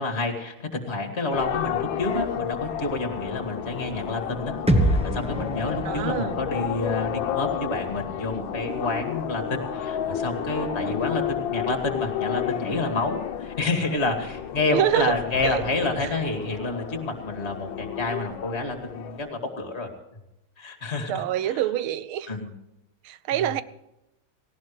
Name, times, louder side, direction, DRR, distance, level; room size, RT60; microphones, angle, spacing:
voice 1, 0.0-19.9 20.6-21.6 22.3-22.5 23.3-23.4, left 2 dB, 30° left, 2.5 m, -29 dB
sound 1, 1.3-19.3, left 9 dB, 70° left, 1.6 m, -31 dB
sound 2, 4.7-8.6, right 1 dB, 5° right, 0.5 m, -27 dB
voice 2, 5.8-6.4 14.7-15.2 15.4-15.6 16.0-16.1 21.1-22.3 23.0-23.6, right 12 dB, 90° right, 1.6 m, -26 dB
Explosion, 15.3-16.9, right 1 dB, 45° right, 5.6 m, -41 dB
18.0 x 17.0 x 3.3 m
omnidirectional pair, 2.3 m